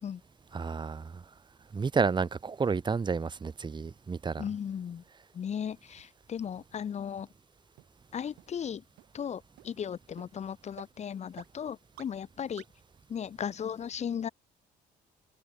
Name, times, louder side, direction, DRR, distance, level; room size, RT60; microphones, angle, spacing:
voice 1, 0.5-1.2 1.7-4.4, right 5 dB, 25° right, 2.6 m, -30 dB
voice 2, 4.4-5.0 5.3-7.3 8.1-8.8 9.1-12.6 13.1-14.3, left 8 dB, 40° left, 1.8 m, -36 dB
sound 1, 6.0-6.1 6.6-6.7 7.2-7.3 7.8-7.9 8.4-8.5 9.0-9.1 9.6-9.7 10.2-10.3 10.8-10.9 11.4-11.5 12.0-12.1 12.6-12.7, right 17 dB, 80° right, 4.2 m, -50 dB
cardioid pair, 110°, 17 cm